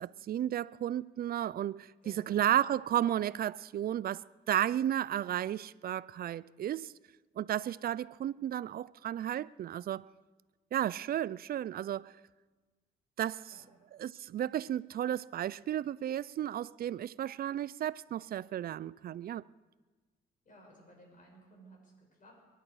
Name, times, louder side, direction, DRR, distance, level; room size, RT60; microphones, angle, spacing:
voice 1, 0.0-1.9 2.3-6.9 7.4-10.1 10.7-12.1 13.2-13.5 14.0-19.5, right 11 dB, 50° right, 0.4 m, -33 dB
voice 2, 2.0-2.5 13.5-13.7 20.4-22.4, equal, 40° left, 6.4 m, -58 dB
22.5 x 11.5 x 4.8 m
cardioid pair, 90°, 20 cm